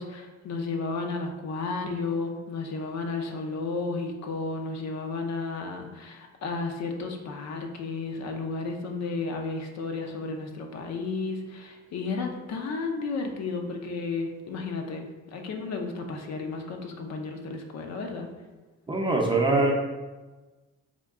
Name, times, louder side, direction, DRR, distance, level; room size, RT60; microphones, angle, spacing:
voice 1, 0.0-18.3, left 3 dB, 60° left, 3 dB, 0.5 m, -33 dB
voice 2, 18.9-19.7, right 2 dB, 15° right, 0 dB, 0.5 m, -23 dB
3.6 x 2.2 x 3.5 m, 1.2 s
cardioid pair, 90°, 30 cm